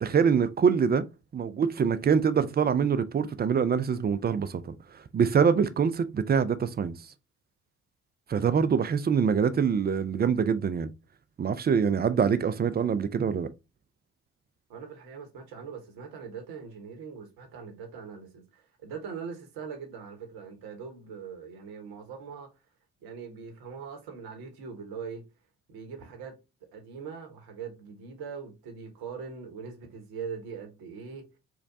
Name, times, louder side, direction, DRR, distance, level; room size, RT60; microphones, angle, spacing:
voice 1, 0.0-1.0 1.3-6.9 8.3-10.9 11.4-13.5, right 6 dB, 25° right, 0.4 m, -25 dB
voice 2, 14.7-22.5 23.0-25.2 25.7-26.4 26.7-31.2, right 6 dB, 65° right, 1.1 m, -41 dB
4.6 x 2.2 x 2.6 m
figure-of-eight pair, 45°, 40 cm